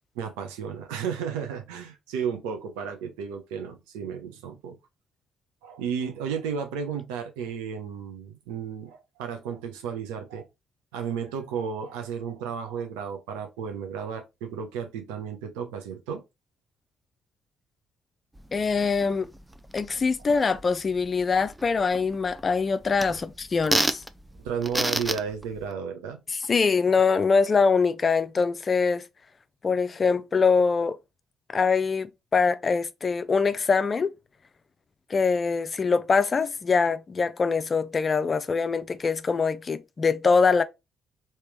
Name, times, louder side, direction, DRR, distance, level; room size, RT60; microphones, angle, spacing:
voice 1, 0.1-4.8 5.6-10.5 10.9-16.2 23.1-23.2 24.4-26.2, right 7 dB, 85° right, 0.7 m, -33 dB
sound 1, 18.3-25.7, right 1 dB, 10° right, 0.5 m, -33 dB
voice 2, 18.5-19.3 19.7-24.0 26.3-29.1 29.6-31.0 31.5-34.1 35.1-40.6, left 5 dB, 45° left, 0.5 m, -23 dB
3.2 x 2.9 x 3.3 m
hypercardioid pair, 45°, 0 cm